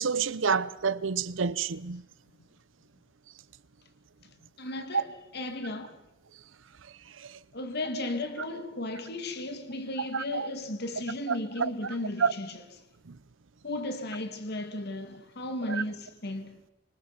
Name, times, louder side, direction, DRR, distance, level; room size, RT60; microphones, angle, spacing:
voice 1, 0.0-2.0 10.1-10.5 12.2-12.3 15.7-15.8, right 6 dB, 70° right, 0.8 m, -28 dB
voice 2, 4.6-6.0 7.5-12.6 13.6-16.6, left 2 dB, 55° left, 2.2 m, -35 dB
25.5 x 24.5 x 5.9 m
head